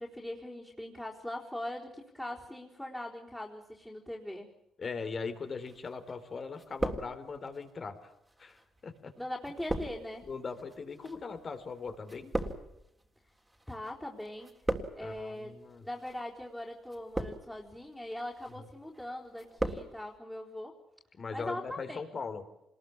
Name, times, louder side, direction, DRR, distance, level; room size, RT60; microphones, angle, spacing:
voice 1, 0.0-4.5 9.1-10.2 13.7-14.5 15.0-20.8 21.3-22.0, left 1 dB, 5° left, -5 dB, 4.2 m, -41 dB
voice 2, 4.8-8.1 8.4-9.1 10.3-12.3 15.0-15.9 21.1-22.4, left 4 dB, 40° left, 9 dB, 3.6 m, -40 dB
sound 1, 5.7-6.2 6.5-7.6 8.3-13.9 14.2-15.2 15.9-16.2 16.9-17.7 18.1-18.6 18.9-19.9 20.1-20.2, right 1 dB, 10° right, 3.5 m, -37 dB
26.0 x 20.5 x 8.7 m, 0.84 s
cardioid pair, 90°, 0 cm